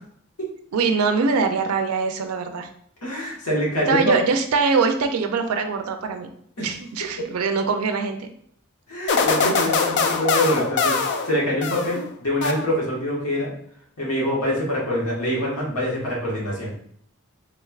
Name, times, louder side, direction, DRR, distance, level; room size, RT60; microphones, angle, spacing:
voice 1, 0.7-2.7 3.9-6.3 6.6-8.3, right 4 dB, 80° right, 6 dB, 0.4 m, -23 dB
voice 2, 3.0-4.2 6.6-6.7 8.9-13.5 14.0-16.8, equal, 85° left, -5 dB, 1.5 m, -25 dB
sound 1, 9.1-12.0 12.4-13.1, left 4 dB, 55° left, 0.4 m, -23 dB
3.7 x 3.2 x 2.3 m, 0.66 s
head